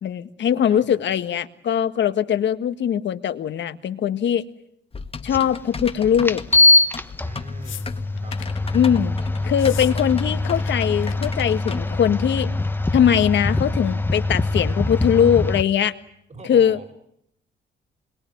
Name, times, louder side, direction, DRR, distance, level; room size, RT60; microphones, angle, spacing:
voice 1, 0.0-4.4 5.2-6.4 8.7-12.5 12.9-15.9 16.5-16.8, left 9 dB, 65° left, 10 dB, 1.6 m, -21 dB
voice 2, 0.7-1.0 7.2-8.0 8.2-8.6 16.3-16.9, right 3 dB, 35° right, 7 dB, 5.0 m, -42 dB
Typing, 4.9-12.0, left 4 dB, 30° left, 1.7 m, -36 dB
sound 1, 5.3-5.4 6.2-15.6, left 2 dB, 10° left, 1.2 m, -22 dB
sound 2, 7.6-8.6 9.5-9.9 10.2-10.7 11.0-11.1 11.5-11.8 12.7-12.8, left 12 dB, 85° left, 1.5 m, -40 dB
26.5 x 22.5 x 9.4 m, 0.74 s
cardioid pair, 90°, 20 cm